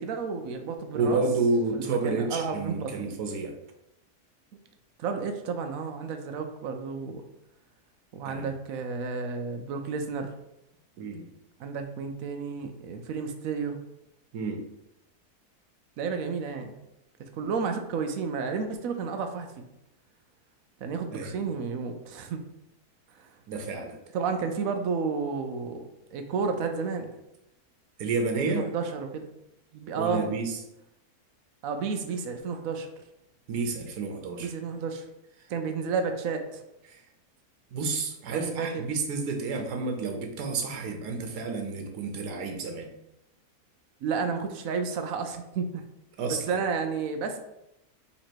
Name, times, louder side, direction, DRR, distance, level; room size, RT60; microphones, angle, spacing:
voice 1, 0.0-1.2 1.7-3.0 5.0-7.2 8.1-10.3 11.6-13.8 16.0-16.8 17.4-19.7 20.8-22.4 23.1-23.3 24.1-27.1 28.5-29.3 29.7-30.3 31.6-32.9 34.4-35.1 35.5-36.6 38.3-38.8 44.0-45.7 46.3-47.4, right 5 dB, 70° right, 6 dB, 0.9 m, -31 dB
voice 2, 0.9-3.5 8.2-8.5 11.0-11.3 14.3-14.6 21.1-21.3 23.5-24.0 28.0-28.6 30.0-30.6 33.5-34.5 36.9-37.0 37.7-42.9 46.2-46.6, right 3 dB, 90° right, 3 dB, 1.3 m, -30 dB
4.1 x 2.9 x 4.4 m, 0.85 s
omnidirectional pair, 1.7 m